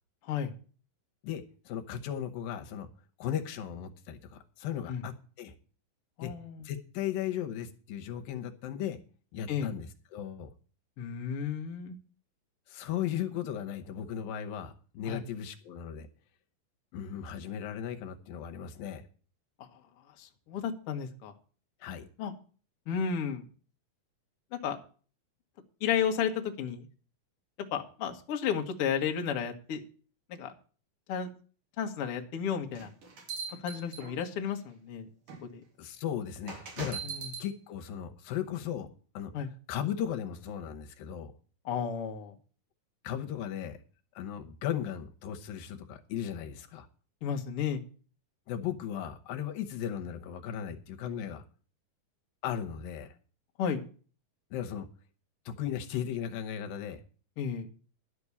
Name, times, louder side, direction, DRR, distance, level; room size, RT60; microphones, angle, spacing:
voice 1, 1.2-2.9 3.2-5.5 6.2-6.3 6.6-9.0 9.3-10.5 12.7-16.1 16.9-19.0 21.8-22.1 35.8-37.0 37.4-38.9 39.1-39.3 39.7-41.3 43.0-43.8 44.2-46.9 48.5-51.4 52.4-53.2 54.5-54.9 55.5-57.0, left 9 dB, 80° left, 6 dB, 2.7 m, -36 dB
voice 2, 6.2-6.7 9.5-9.7 11.0-12.0 15.0-15.2 20.2-21.3 22.2-22.3 22.9-23.5 24.5-24.8 25.8-26.9 27.7-29.8 30.3-30.5 31.1-31.3 31.8-32.9 33.6-35.1 35.5-35.6 37.0-37.3 39.3-39.5 41.7-42.3 47.2-47.8 53.6-53.8 57.4-57.7, left 7 dB, 55° left, 4 dB, 1.7 m, -32 dB
door open close with bell, 32.7-34.5 35.3-35.4 36.5-37.5, right 5 dB, 65° right, 4.0 m, -40 dB
11.5 x 6.1 x 8.3 m, 0.39 s
omnidirectional pair, 4.1 m